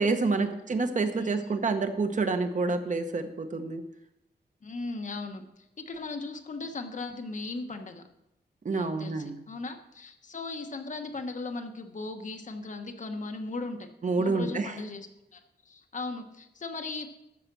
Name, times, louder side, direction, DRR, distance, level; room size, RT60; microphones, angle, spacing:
voice 1, 0.0-3.8 8.6-9.4 14.0-14.7, right 3 dB, 45° right, 8 dB, 1.1 m, -28 dB
voice 2, 1.2-1.6 4.6-8.1 8.7-13.9 14.2-15.4 15.6-17.1, left 3 dB, 45° left, 6 dB, 1.1 m, -38 dB
13.5 x 5.8 x 6.1 m, 0.86 s
wide cardioid pair, 140°, 18 cm